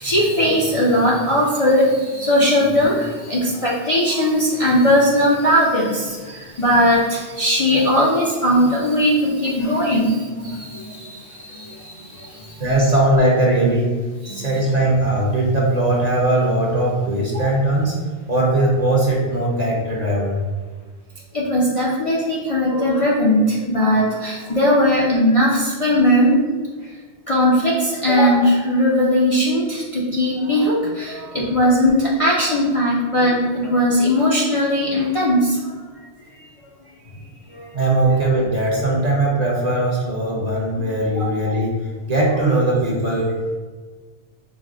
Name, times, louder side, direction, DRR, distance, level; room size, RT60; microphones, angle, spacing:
voice 1, 0.0-3.0 3.3-6.1 6.6-10.8 14.3-14.5 17.3-17.6 21.3-26.4 27.3-27.7 28.0-35.5 41.2-41.3, equal, 40° left, -6 dB, 0.5 m, -18 dB
voice 2, 12.6-13.9 14.3-18.0 18.3-20.5 37.7-41.7 42.1-43.6, right 1 dB, 40° right, -3 dB, 0.8 m, -19 dB
5.1 x 2.1 x 3.6 m, 1.4 s
omnidirectional pair, 1.1 m